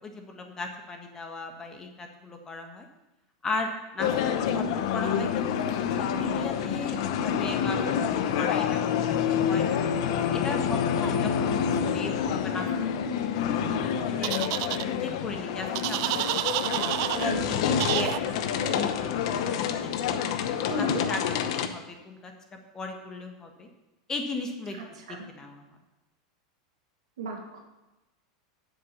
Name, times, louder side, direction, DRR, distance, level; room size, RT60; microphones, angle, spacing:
voice 1, 0.0-2.9 3.4-4.6 4.9-9.8 10.3-12.7 12.9-14.3 15.0-16.2 16.7-19.2 19.4-21.2 21.6-22.3 22.7-23.7 24.1-24.8 25.1-25.6, left 3 dB, 20° left, 4 dB, 1.4 m, -37 dB
sound 1, 4.0-21.7, left 8 dB, 65° left, 0.8 m, -28 dB
sound 2, 14.2-14.8 15.8-17.3 17.8-18.2, right 16 dB, 60° right, 0.4 m, -29 dB
voice 2, 17.2-17.5 20.7-21.0 25.0-25.3 27.2-27.6, right 3 dB, 90° right, 2 dB, 2.1 m, -34 dB
7.3 x 7.3 x 7.0 m, 1.0 s
supercardioid pair, 130°, 3 cm